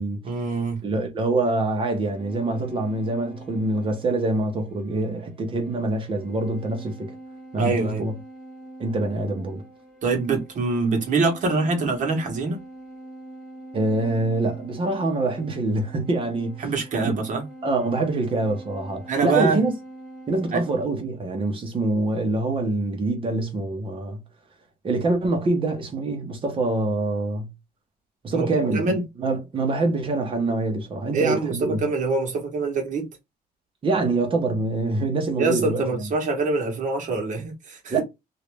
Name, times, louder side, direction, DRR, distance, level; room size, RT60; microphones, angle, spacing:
voice 1, 0.2-0.8 7.6-8.0 10.0-12.6 16.6-17.4 19.1-19.6 20.5-20.6 28.3-28.5 28.7-29.0 31.1-33.1 35.4-38.0, right 3 dB, 55° right, 1.2 m, -24 dB
voice 2, 0.8-7.2 7.5-8.1 8.8-9.6 13.7-16.7 17.0-17.1 17.6-19.7 20.3-24.2 24.8-27.5 28.2-31.8 33.8-36.1 37.9-38.0, right 2 dB, 35° right, 1.0 m, -25 dB
sound 1, 1.8-20.8, right 1 dB, ahead, 1.8 m, -44 dB
3.1 x 2.8 x 3.4 m
cardioid pair, 160°, 16 cm